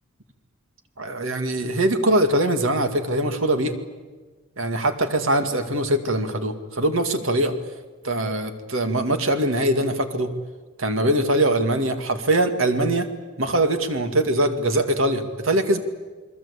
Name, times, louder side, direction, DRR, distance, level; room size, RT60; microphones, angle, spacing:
voice 1, 1.0-3.8 4.6-7.5 8.0-10.3 10.8-13.1 13.4-15.8, right 1 dB, 70° right, 7 dB, 2.3 m, -22 dB
28.5 x 21.5 x 8.5 m, 1.3 s
head